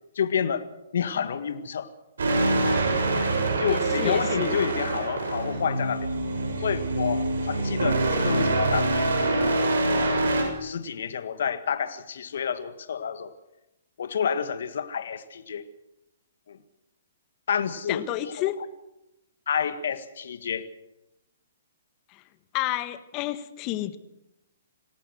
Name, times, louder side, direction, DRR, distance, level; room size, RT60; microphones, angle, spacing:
voice 1, 0.2-0.6 0.9-1.9 2.8-3.0 3.6-6.1 6.6-10.2 10.6-13.3 14.0-15.6 16.5-16.6 17.5-18.0 19.5-20.7, left 7 dB, 65° left, 11 dB, 1.7 m, -29 dB
sound 1, 2.2-10.4, right 2 dB, 75° right, 6.8 m, -25 dB
voice 2, 3.7-4.7 17.9-18.6 22.1-22.2 22.5-24.0, left 14 dB, 35° left, 13 dB, 1.6 m, -30 dB
27.0 x 17.5 x 6.4 m, 0.91 s
hypercardioid pair, 130°, 0 cm